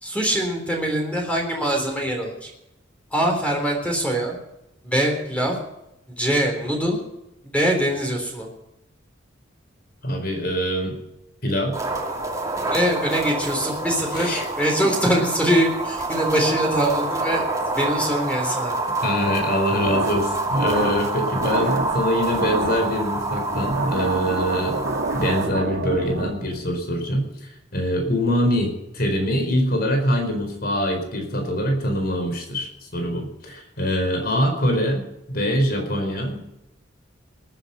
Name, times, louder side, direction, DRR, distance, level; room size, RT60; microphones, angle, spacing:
voice 1, 0.0-2.5 3.1-4.4 4.8-5.6 6.2-7.0 7.5-8.5 12.7-17.5 17.7-18.8, equal, 5° left, 1 dB, 3.6 m, -23 dB
voice 2, 10.0-11.0 11.4-11.7 14.1-14.5 19.0-36.6, equal, 55° left, 5 dB, 4.4 m, -24 dB
sound 1, 11.7-25.5, right 2 dB, 20° right, 2.7 m, -27 dB
sound 2, 19.8-26.6, right 2 dB, 80° right, 2.1 m, -29 dB
19.5 x 10.5 x 5.6 m, 0.89 s
head